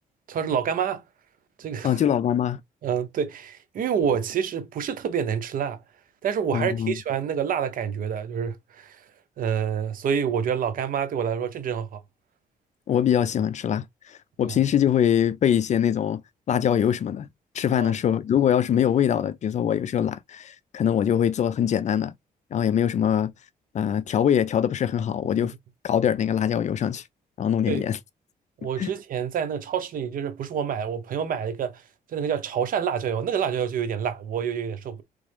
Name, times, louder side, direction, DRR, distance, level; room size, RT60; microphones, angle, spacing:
voice 1, 0.3-1.0 1.6-2.0 2.8-5.8 6.2-9.0 9.4-12.0 14.4-14.6 17.7-18.0 25.2-25.3 27.7-27.8 28.6-31.8 32.1-35.0, right 7 dB, 65° right, 0.9 m, -27 dB
voice 2, 1.8-2.6 6.5-6.9 12.9-16.2 16.5-17.3 17.5-22.1 22.5-23.3 23.7-25.5 25.8-27.0 27.4-28.0 28.8-28.9, left 9 dB, 50° left, 0.5 m, -23 dB
3.8 x 3.4 x 3.4 m
cardioid pair, 125°, 16 cm